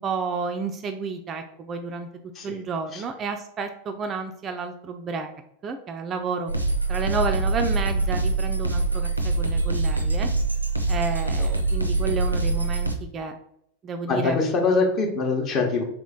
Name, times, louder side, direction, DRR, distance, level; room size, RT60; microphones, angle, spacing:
voice 1, 0.0-2.1 2.4-5.3 5.6-6.5 6.9-10.3 10.9-13.3 13.8-14.4, right 4 dB, 25° right, 6 dB, 0.3 m, -31 dB
sound 1, 6.5-12.9, right 3 dB, 85° right, 0.5 m, -24 dB
voice 2, 14.1-15.8, left 4 dB, 30° left, 2 dB, 0.9 m, -23 dB
3.4 x 3.0 x 3.7 m, 0.74 s
figure-of-eight pair, 90°, 0 cm